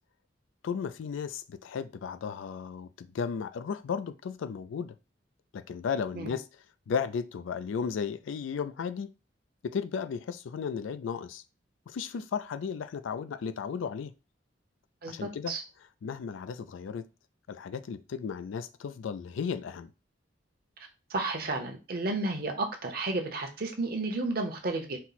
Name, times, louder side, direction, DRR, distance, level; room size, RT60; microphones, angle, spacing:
voice 1, 0.6-5.0 5.5-6.5 6.9-9.1 9.6-11.4 11.9-14.1 15.1-15.5 16.0-17.0 17.5-19.9, left 6 dB, 85° left, 0.3 m, -34 dB
voice 2, 15.0-15.6 21.1-25.0, right 2 dB, 50° right, 0.8 m, -32 dB
4.3 x 2.1 x 3.9 m
head